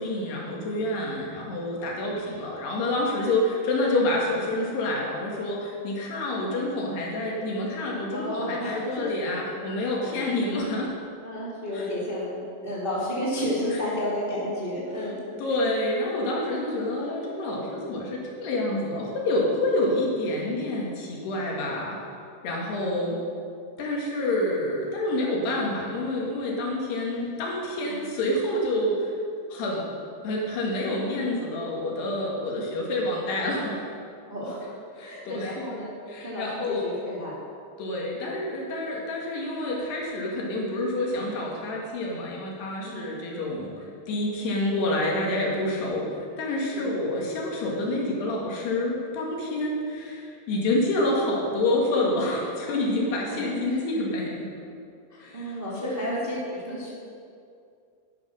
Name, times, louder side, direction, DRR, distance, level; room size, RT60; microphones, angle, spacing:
voice 1, 0.0-10.9 11.7-11.9 15.4-22.0 22.4-23.2 23.8-29.2 29.5-29.9 30.2-33.8 35.0-35.6 36.1-36.9 37.8-54.5 55.2-55.5 55.8-56.0, left 1 dB, 65° left, -2 dB, 3.8 m, -28 dB
voice 2, 8.1-9.1 10.0-10.4 11.2-15.2 27.8-28.0 34.3-36.0 36.2-37.4 42.8-43.2 46.7-46.9 52.7-52.8 53.1-53.8 55.1-56.9, left 1 dB, 15° right, -6 dB, 1.8 m, -32 dB
13.0 x 10.5 x 6.4 m, 2.4 s
omnidirectional pair, 5.3 m